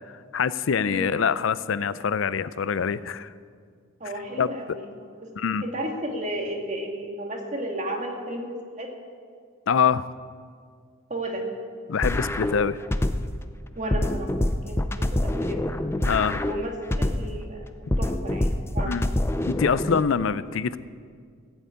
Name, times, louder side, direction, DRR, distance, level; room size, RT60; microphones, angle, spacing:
voice 1, 0.3-3.3 4.4-4.5 5.4-5.6 9.7-10.1 11.9-12.8 16.1-16.4 18.8-19.1 19.5-20.8, left 6 dB, 70° left, 16 dB, 0.5 m, -24 dB
voice 2, 0.8-1.2 4.0-5.3 5.6-8.9 11.1-11.5 13.8-14.3 14.6-15.8 16.4-19.0, right 1 dB, 35° right, 2 dB, 1.8 m, -33 dB
sound 1, 12.0-13.4 13.9-17.4 17.9-20.0, left 1 dB, 10° left, 0.4 m, -26 dB
15.0 x 8.1 x 8.6 m, 2.1 s
head